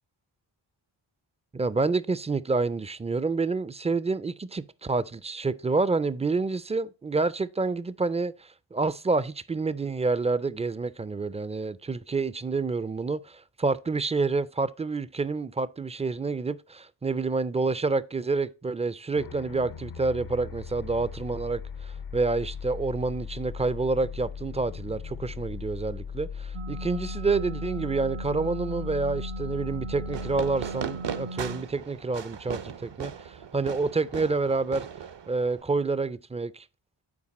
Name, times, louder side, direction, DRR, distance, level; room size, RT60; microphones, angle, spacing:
voice 1, 1.5-34.9 35.3-36.7, right 3 dB, 15° right, 0.3 m, -28 dB
sound 1, 19.2-31.9, left 6 dB, 50° left, 0.5 m, -38 dB
sound 2, 26.5-31.6, right 3 dB, 90° right, 0.9 m, -38 dB
Fireworks, 30.1-35.6, right 7 dB, 60° right, 0.7 m, -38 dB
8.7 x 4.5 x 4.1 m
wide cardioid pair, 60°, 50 cm